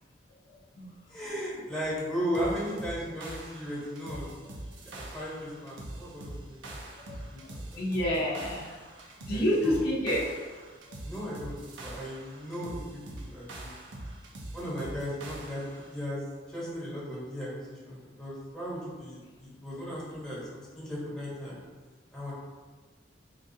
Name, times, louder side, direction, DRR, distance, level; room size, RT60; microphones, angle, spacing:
voice 1, 1.1-4.3 4.8-6.8 7.3-7.8 9.3-9.8 11.0-13.7 14.5-15.6 15.9-16.2 16.5-21.6 22.1-22.3, equal, 5° left, -8 dB, 1.0 m, -36 dB
sound 1, 2.3-15.9, right 1 dB, 85° right, 0.6 m, -43 dB
voice 2, 7.8-8.7 9.2-10.2, equal, 60° left, -5 dB, 0.5 m, -28 dB
3.8 x 2.4 x 2.6 m, 1.4 s
head